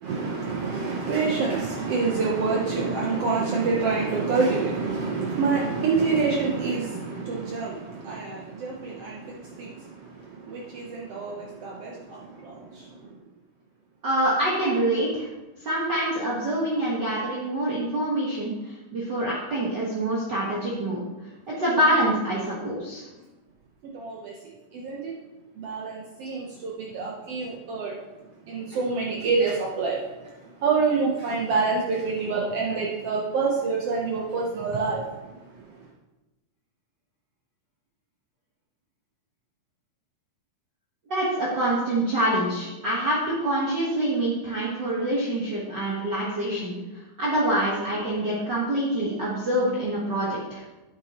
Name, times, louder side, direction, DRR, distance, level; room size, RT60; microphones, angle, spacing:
voice 1, 0.0-13.2 23.9-25.1 25.5-35.9, right 4 dB, 70° right, -2 dB, 1.5 m, -27 dB
voice 2, 14.0-15.3 15.6-21.0 21.5-23.0 41.1-46.8 47.2-50.6, right 1 dB, 45° right, -6 dB, 1.5 m, -25 dB
9.7 x 7.8 x 2.9 m, 1.1 s
omnidirectional pair, 3.6 m